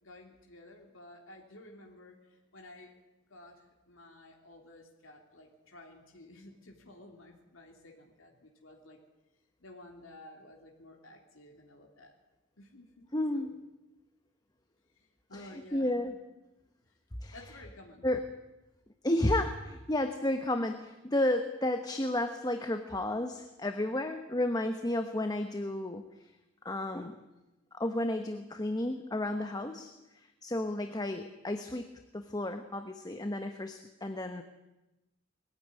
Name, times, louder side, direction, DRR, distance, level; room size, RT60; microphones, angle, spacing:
voice 1, 0.0-2.9 3.3-9.0 9.6-12.1 12.6-13.1 13.3-13.5 14.9-16.0 16.9-17.0 17.3-18.1, left 1 dB, 70° left, 0 dB, 3.2 m, -53 dB
voice 2, 13.1-13.5 15.3-16.1 17.2-17.4 18.0-18.2 19.0-26.0 26.6-27.2 27.7-31.9 32.1-34.4, left 1 dB, 20° left, 7 dB, 1.1 m, -32 dB
21.0 x 14.5 x 9.8 m, 1.0 s
head